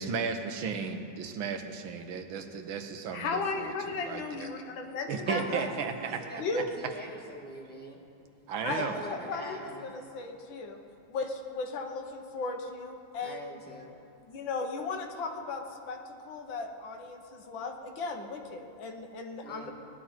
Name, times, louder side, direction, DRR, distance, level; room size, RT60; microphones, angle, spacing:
voice 1, 0.0-4.5 5.1-6.6 8.5-9.0, right 6 dB, 85° right, 6 dB, 1.7 m, -35 dB
voice 2, 3.1-5.7 6.4-6.7 8.6-10.8 11.1-13.6 14.3-16.0 16.3-19.7, left 4 dB, 75° left, 4 dB, 1.8 m, -36 dB
voice 3, 5.3-8.0 8.6-9.9 13.2-13.9 19.4-19.7, equal, 5° left, -3 dB, 1.6 m, -42 dB
19.5 x 12.0 x 4.4 m, 2.7 s
omnidirectional pair, 2.1 m